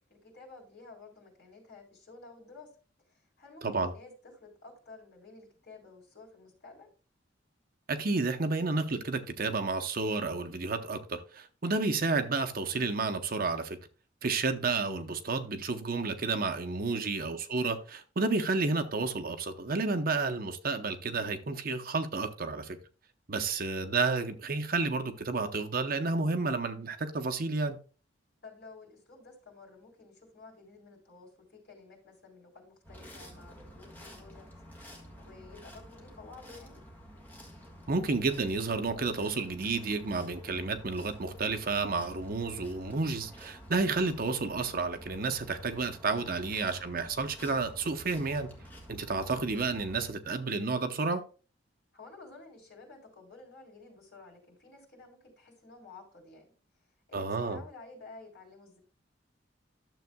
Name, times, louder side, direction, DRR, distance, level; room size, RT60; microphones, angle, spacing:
voice 1, 0.0-2.7 3.1-6.9 16.7-17.0 23.5-23.7 28.4-34.5 35.2-36.8 51.9-56.5 57.1-58.8, left 3 dB, 55° left, 3.6 m, -52 dB
voice 2, 7.9-13.8 14.2-22.8 23.3-27.8 37.9-48.5 48.9-51.2 57.1-57.6, right 3 dB, 50° right, 0.8 m, -31 dB
sound 1, 32.8-50.1, equal, 10° left, 1.5 m, -50 dB
12.0 x 7.1 x 2.2 m
head